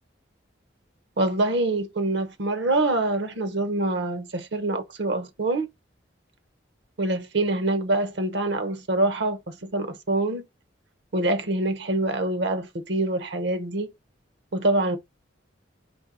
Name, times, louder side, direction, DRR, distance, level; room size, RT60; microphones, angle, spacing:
voice 1, 1.2-5.7 7.0-10.4 11.1-13.9 14.5-15.0, right 2 dB, 65° right, 0.8 m, -25 dB
4.5 x 2.8 x 3.7 m
head